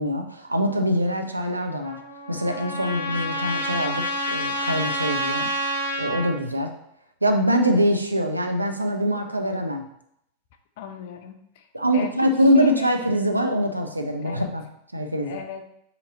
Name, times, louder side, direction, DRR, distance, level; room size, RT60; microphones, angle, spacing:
voice 1, 0.0-2.0 2.3-5.5 6.0-6.7 7.2-9.8 11.7-14.6 14.9-15.4, equal, 85° right, 4 dB, 0.5 m, -23 dB
Trumpet, 1.8-6.3, equal, 85° left, 0.7 m, -28 dB
voice 2, 10.8-11.7 11.9-13.1 14.2-14.6 15.2-15.6, left 9 dB, 50° left, 6 dB, 0.5 m, -37 dB
3.9 x 2.9 x 3.8 m, 0.75 s
figure-of-eight pair, 90°, 0 cm